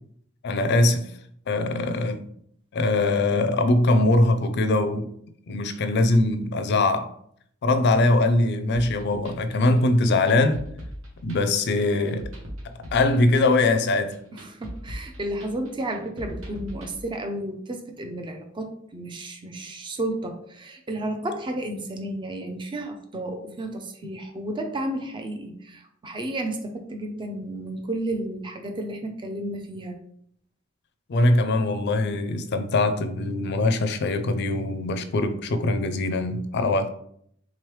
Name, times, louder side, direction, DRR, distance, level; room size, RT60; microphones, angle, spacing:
voice 1, 0.4-1.1 1.5-2.2 2.7-5.1 5.5-7.1 7.6-10.6 11.2-12.2 12.9-14.2 31.1-36.9, left 2 dB, 55° left, 0.4 m, -22 dB
sound 1, 8.7-16.9, equal, 85° right, 1.0 m, -40 dB
voice 2, 14.3-30.0, right 1 dB, 25° right, 0.5 m, -32 dB
3.7 x 3.1 x 3.1 m
head